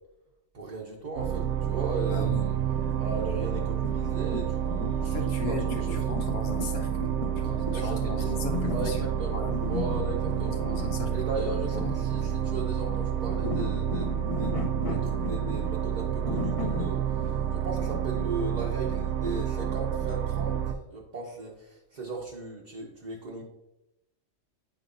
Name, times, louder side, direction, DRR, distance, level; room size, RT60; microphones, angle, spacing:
voice 1, 0.5-2.3 3.0-6.1 7.7-8.3 8.7-10.6 11.1-23.4, right 3 dB, 40° right, -3 dB, 0.8 m, -37 dB
sound 1, 1.2-20.7, right 9 dB, 70° right, 0.9 m, -29 dB
voice 2, 2.1-2.4 5.0-9.5 10.3-11.1 11.7-11.9, left 3 dB, 80° left, 2 dB, 1.2 m, -37 dB
sound 2, 2.7-18.2, left 4 dB, 35° left, 0.6 m, -38 dB
9.3 x 4.4 x 2.6 m, 0.90 s
omnidirectional pair, 1.3 m